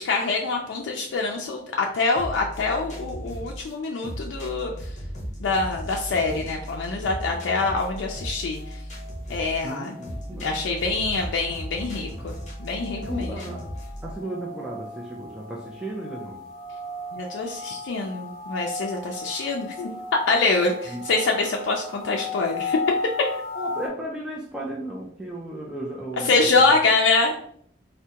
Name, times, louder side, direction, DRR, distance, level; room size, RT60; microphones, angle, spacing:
voice 1, 0.0-4.7 5.4-8.6 9.3-10.0 10.4-12.3 12.6-13.3 17.1-20.0 20.3-22.8 26.3-27.4, left 3 dB, 80° left, 0 dB, 0.4 m, -25 dB
sound 1, 2.1-14.2, equal, 40° left, 0.8 m, -36 dB
sound 2, 7.7-23.9, left 2 dB, 20° right, 0.9 m, -37 dB
voice 2, 9.6-10.5 13.0-13.7 14.0-16.4 20.9-21.0 23.5-26.8, right 1 dB, 5° right, -4 dB, 0.3 m, -35 dB
3.4 x 2.1 x 2.8 m, 0.63 s
head